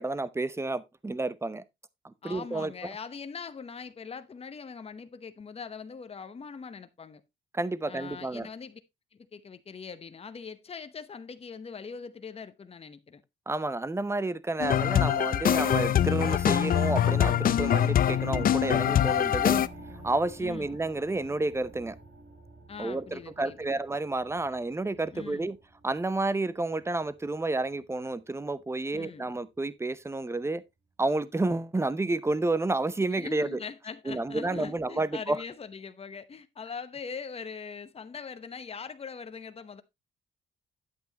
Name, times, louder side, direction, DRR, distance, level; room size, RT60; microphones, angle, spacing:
voice 1, 0.0-1.6 2.0-3.0 7.5-8.5 13.5-19.6 20.0-22.0 22.8-25.6 25.8-30.6 31.0-33.6 34.1-35.4, right 2 dB, 15° right, 0.7 m, -30 dB
voice 2, 2.2-7.2 7.9-8.8 9.1-13.2 20.4-20.8 22.7-23.8 25.1-25.5 28.9-29.3 33.1-39.8, left 5 dB, 30° left, 0.9 m, -42 dB
sound 1, 14.6-19.7, left 10 dB, 45° left, 0.5 m, -24 dB
sound 2, 16.1-26.1 26.8-26.9, right 1 dB, 60° right, 7.1 m, -46 dB
9.4 x 8.1 x 2.9 m
cardioid pair, 90°, 20 cm